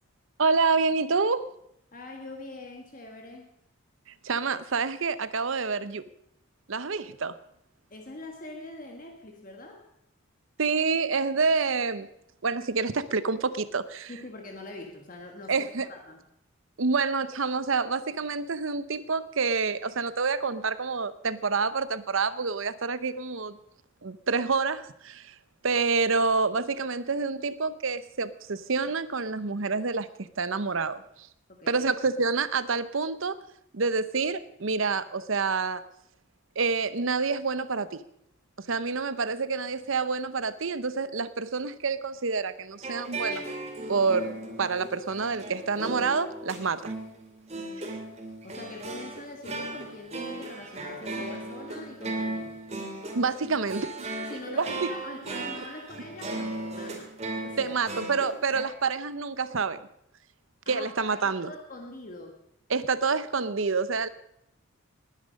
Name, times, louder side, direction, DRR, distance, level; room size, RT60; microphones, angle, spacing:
voice 1, 0.4-1.5 4.2-6.0 6.7-7.4 10.6-12.1 12.4-14.1 15.5-15.9 16.8-23.6 24.0-25.3 25.6-31.3 31.7-33.4 33.7-35.8 36.6-38.0 38.6-43.4 43.9-44.3 44.6-46.9 47.8-48.0 53.1-54.1 54.5-54.9 57.6-59.8 60.7-61.5 62.7-64.1, right 4 dB, 65° right, 15 dB, 0.8 m, -28 dB
voice 2, 1.9-3.5 7.9-9.9 14.1-16.2 31.5-31.8 48.4-52.6 54.2-57.1 57.4-57.8 60.6-62.4, left 2 dB, 40° left, 2 dB, 1.5 m, -43 dB
sound 1, 42.8-58.6, right 2 dB, 30° right, 2.6 m, -36 dB
20.0 x 10.0 x 5.2 m, 0.77 s
head